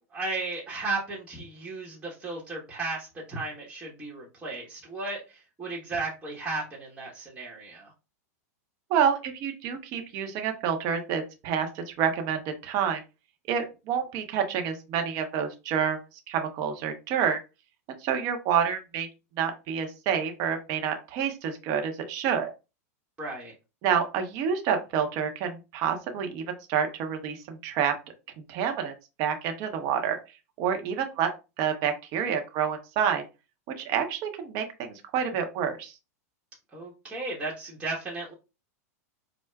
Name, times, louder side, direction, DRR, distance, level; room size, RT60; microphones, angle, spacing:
voice 1, 0.1-7.9 23.2-23.5 36.7-38.3, right 3 dB, 15° right, -4 dB, 1.0 m, -35 dB
voice 2, 8.9-13.0 13.5-16.0 16.3-17.4 18.0-19.1 19.4-22.5 23.8-27.9 28.5-28.9 29.2-30.2 30.6-31.3 31.6-33.2 33.8-35.9, right 8 dB, 45° right, 5 dB, 0.7 m, -28 dB
4.6 x 2.1 x 2.2 m, 0.29 s
hypercardioid pair, 120°, 9 cm